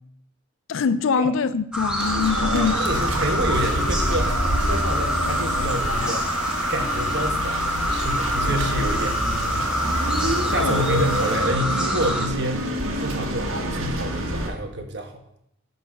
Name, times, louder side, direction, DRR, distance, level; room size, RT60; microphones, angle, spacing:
voice 1, 0.7-2.8 8.5-8.6 9.9-10.0 10.5-10.8, left 6 dB, 70° left, 0.4 m, -24 dB
sound 1, 1.7-12.3, equal, 5° right, 0.9 m, -26 dB
sound 2, 2.0-14.5, right 1 dB, 80° right, 1.5 m, -28 dB
voice 2, 2.4-6.2 6.7-9.8 10.5-12.7 12.9-15.2, right 1 dB, 55° right, 1.2 m, -29 dB
sound 3, 2.9-11.4, left 2 dB, 35° left, 1.6 m, -33 dB
12.0 x 4.1 x 5.0 m
head